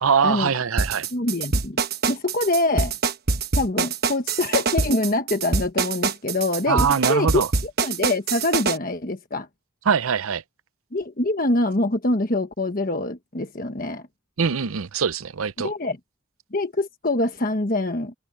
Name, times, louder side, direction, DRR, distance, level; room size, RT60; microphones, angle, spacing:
voice 1, 0.0-1.1 6.7-7.5 9.9-10.4 14.4-15.7, right 6 dB, 80° right, 0.7 m, -22 dB
sound 1, 0.8-8.8, right 4 dB, 45° right, 1.2 m, -24 dB
voice 2, 1.1-1.8 2.1-2.9 3.5-9.5 10.9-14.1 15.6-16.0 16.5-18.1, left 2 dB, 40° left, 1.2 m, -25 dB
open air
head